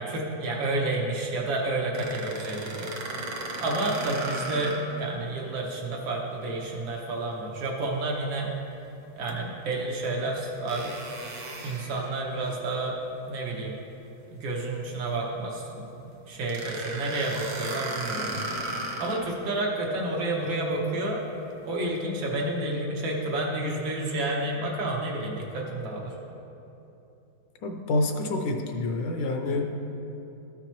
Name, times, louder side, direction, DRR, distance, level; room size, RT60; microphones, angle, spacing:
voice 1, 0.0-2.9 3.6-8.5 9.2-11.0 11.6-12.9 13.3-13.7 14.3-15.9 16.3-18.6 19.0-21.2 21.7-26.1 29.5-29.7, right 2 dB, 90° right, -2 dB, 1.9 m, -30 dB
sound 1, 1.9-5.0 5.5-5.6 9.3-9.4 10.7-12.6 16.5-19.3, right 2 dB, 55° right, 0.9 m, -35 dB
voice 2, 27.6-29.7, left 2 dB, 75° left, 4 dB, 1.3 m, -27 dB
13.5 x 5.9 x 3.0 m, 2.9 s
omnidirectional pair, 2.0 m